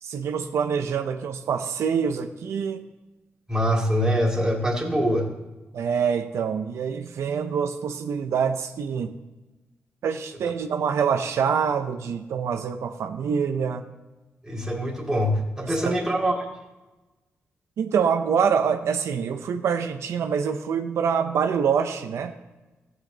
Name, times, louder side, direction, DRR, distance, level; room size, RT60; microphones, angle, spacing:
voice 1, 0.0-2.8 5.7-9.1 10.0-13.8 15.8-15.9 17.8-22.3, right 7 dB, 85° right, 7 dB, 0.6 m, -25 dB
voice 2, 3.5-5.3 14.4-16.5, equal, 15° right, 0 dB, 2.4 m, -24 dB
14.5 x 8.0 x 3.9 m, 1.1 s
cardioid pair, 70°, 5 cm